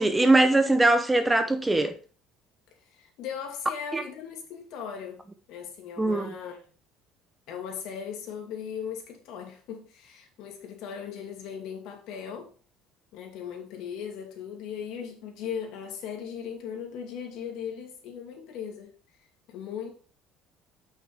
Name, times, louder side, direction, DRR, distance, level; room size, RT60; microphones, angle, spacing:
voice 1, 0.0-2.0 3.9-4.0 6.0-6.3, right 2 dB, 10° right, 0.7 m, -21 dB
voice 2, 2.9-5.2 5.5-6.6 7.5-12.5 13.1-18.9 19.5-19.9, left 7 dB, 65° left, 2.5 m, -38 dB
8.5 x 6.2 x 3.4 m
cardioid pair, 145°, 0 cm